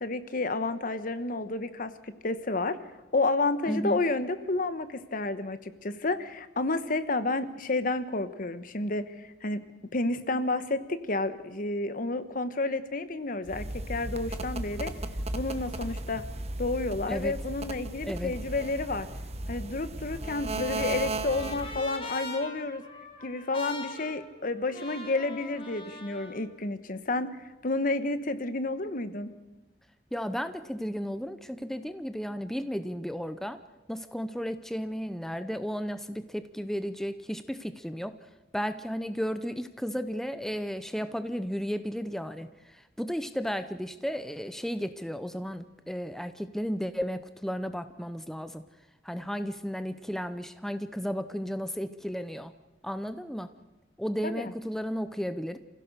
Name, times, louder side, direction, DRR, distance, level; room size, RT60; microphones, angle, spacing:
voice 1, 0.0-2.8 3.1-9.6 9.9-14.9 15.3-16.3 16.6-19.1 19.5-22.8 23.2-27.4 27.6-29.3 54.2-54.5, left 2 dB, 50° left, 12 dB, 1.2 m, -30 dB
voice 2, 3.7-4.0 17.1-17.3 18.0-18.3 30.1-33.6 33.9-38.2 38.5-48.6 49.0-52.5 52.8-53.5 54.0-55.6, equal, ahead, 10 dB, 0.6 m, -34 dB
sound 1, 13.5-21.8, right 2 dB, 35° right, 1.2 m, -36 dB
Trumpet, 20.1-26.4, left 2 dB, 30° left, 3.0 m, -43 dB
28.0 x 16.0 x 6.7 m, 1.1 s
head